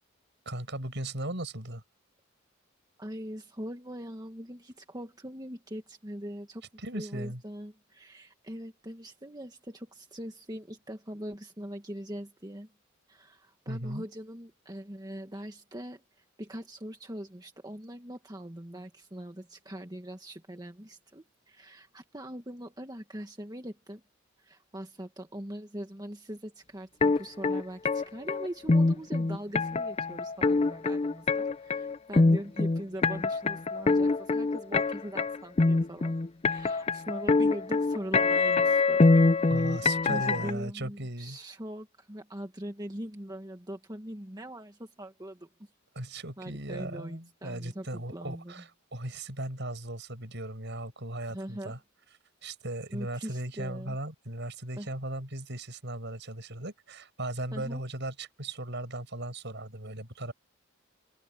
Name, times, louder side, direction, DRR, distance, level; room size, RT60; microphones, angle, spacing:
voice 1, 0.5-1.8 6.8-7.4 13.7-14.1 39.5-41.4 46.0-51.8 52.4-60.3, right 1 dB, 60° right, 7.6 m, -37 dB
voice 2, 3.0-6.6 6.9-12.7 13.1-24.0 24.4-36.1 36.4-39.0 39.4-39.8 40.1-45.5 46.4-48.6 51.3-51.7 52.9-54.0 54.8-54.9 57.5-57.8, equal, 20° right, 1.6 m, -41 dB
sound 1, 27.0-40.5, left 3 dB, 30° left, 0.5 m, -24 dB
head